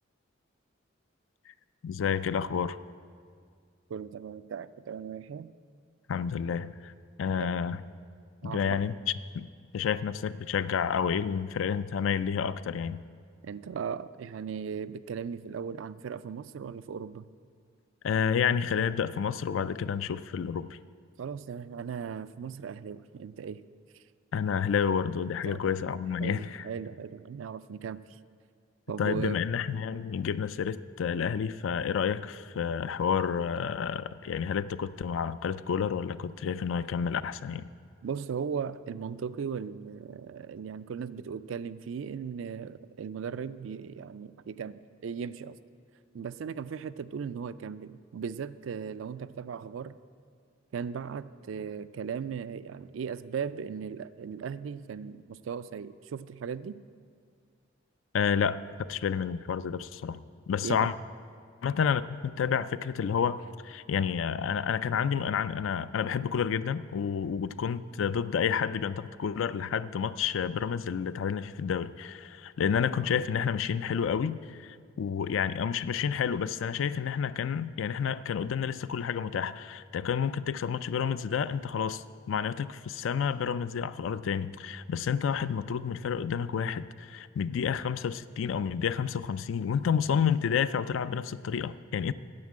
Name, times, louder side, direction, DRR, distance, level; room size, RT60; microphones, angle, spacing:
voice 1, 1.8-2.8 6.1-6.9 7.2-7.8 8.4-8.9 9.3-9.5 9.7-13.0 18.0-20.7 24.3-26.7 29.0-37.7 58.1-60.2 60.5-60.9 61.6-92.1, left 7 dB, 75° left, 15 dB, 0.4 m, -30 dB
voice 2, 3.9-5.5 7.4-7.5 8.4-8.8 13.4-17.3 21.2-23.6 25.5-25.7 26.2-28.0 28.9-29.5 38.0-45.6 46.1-50.0 50.7-56.8 60.6-60.9 72.6-72.7, right 6 dB, 70° right, 15 dB, 0.4 m, -37 dB
9.5 x 7.3 x 8.5 m, 2.2 s
head